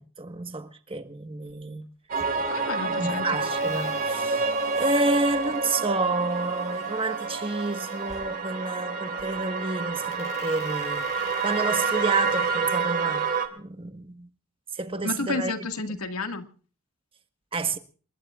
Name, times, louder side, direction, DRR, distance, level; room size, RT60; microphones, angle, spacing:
voice 1, 0.0-1.9 2.2-2.3 3.0-4.5 4.7-13.3 13.6-14.3 14.7-15.5 17.5-17.8, right 2 dB, 25° right, 1.4 m, -30 dB
sound 1, 1.4-1.8 2.1-2.7 3.4-5.7 6.3-8.3 9.0-9.4 10.0-12.5, left 3 dB, 30° left, 5.3 m, -48 dB
sound 2, 2.1-13.5, right 4 dB, 40° right, 2.7 m, -28 dB
voice 2, 2.5-3.4 15.0-16.4, left 3 dB, 75° left, 2.0 m, -31 dB
28.0 x 21.0 x 2.5 m
head